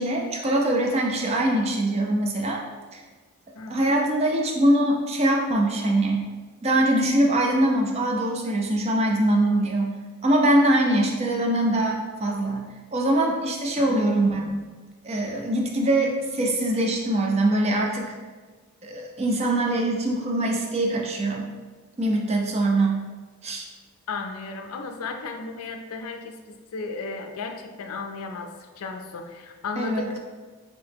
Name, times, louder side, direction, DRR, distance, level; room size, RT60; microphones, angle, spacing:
voice 1, 0.0-2.6 2.9-3.0 3.7-6.3 6.6-9.9 10.2-12.6 12.9-14.6 15.0-18.1 18.8-21.5 22.0-23.0 23.4-23.7 29.8-30.1, right 1 dB, 30° right, 1 dB, 0.4 m, -23 dB
voice 2, 3.5-4.0 13.8-14.1 24.1-30.2, left 4 dB, 80° left, 5 dB, 0.4 m, -35 dB
2.9 x 2.8 x 3.4 m, 1.4 s
head